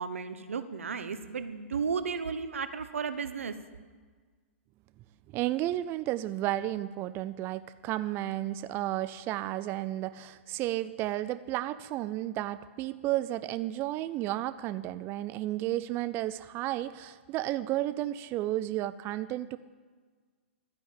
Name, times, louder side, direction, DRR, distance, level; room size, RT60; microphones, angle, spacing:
voice 1, 0.0-3.5, right 6 dB, 85° right, 11 dB, 1.0 m, -34 dB
voice 2, 5.3-19.6, right 14 dB, 35° right, 14 dB, 0.4 m, -32 dB
12.5 x 9.7 x 8.5 m, 1.5 s
hypercardioid pair, 120°, 7 cm